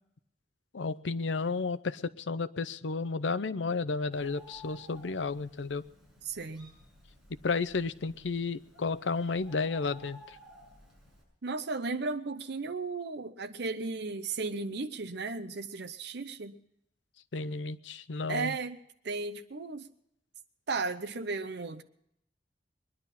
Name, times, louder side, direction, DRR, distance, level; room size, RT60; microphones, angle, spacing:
voice 1, 0.7-5.8 7.4-10.4 17.3-18.5, left 4 dB, 90° left, 0.7 m, -32 dB
Bird, 4.1-11.2, left 1 dB, ahead, 6.8 m, -55 dB
voice 2, 6.2-6.7 11.4-16.6 18.3-18.8 19.0-19.9 20.7-21.8, right 3 dB, 65° right, 0.7 m, -35 dB
21.5 x 11.0 x 5.8 m
head